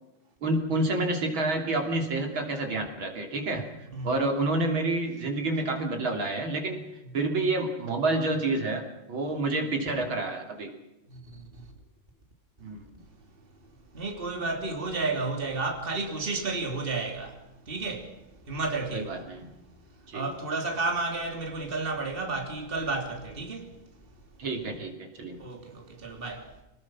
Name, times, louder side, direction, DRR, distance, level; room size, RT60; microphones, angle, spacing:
voice 1, 0.4-3.7 4.0-6.8 7.1-10.7 12.6-12.8 18.9-19.5 20.1-20.3 24.4-25.4, right 2 dB, 70° right, 3.9 m, -28 dB
voice 2, 11.1-11.6 13.9-17.4 17.7-18.2 18.5-19.2 20.1-23.8 25.4-26.5, right 3 dB, 25° right, 3.0 m, -32 dB
27.5 x 19.5 x 6.1 m
omnidirectional pair, 2.3 m